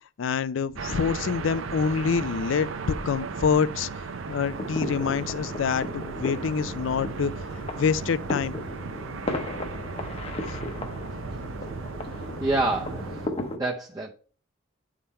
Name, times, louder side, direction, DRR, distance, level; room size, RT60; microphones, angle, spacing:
voice 1, 0.2-3.9 4.3-7.3 7.8-8.7, left 6 dB, 70° left, 0.4 m, -26 dB
sound 1, 0.8-13.3, right 4 dB, 75° right, 0.6 m, -36 dB
sound 2, 4.4-13.6, left 1 dB, 30° left, 0.8 m, -35 dB
voice 2, 12.1-13.2 13.5-14.1, right 2 dB, 20° right, 0.6 m, -28 dB
10.0 x 3.7 x 4.2 m
head